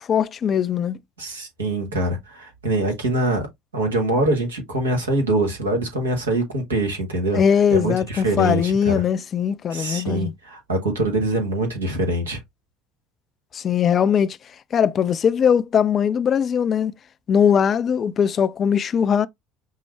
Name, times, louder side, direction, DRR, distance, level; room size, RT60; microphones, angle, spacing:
voice 1, 0.1-1.0 7.3-10.3 13.5-14.4 14.7-16.9 17.3-19.3, left 8 dB, 45° left, 0.4 m, -20 dB
voice 2, 1.2-3.5 3.7-7.4 7.7-9.0 9.7-12.4, right 1 dB, 90° right, 1.3 m, -24 dB
5.5 x 2.0 x 3.2 m
hypercardioid pair, 65°, 0 cm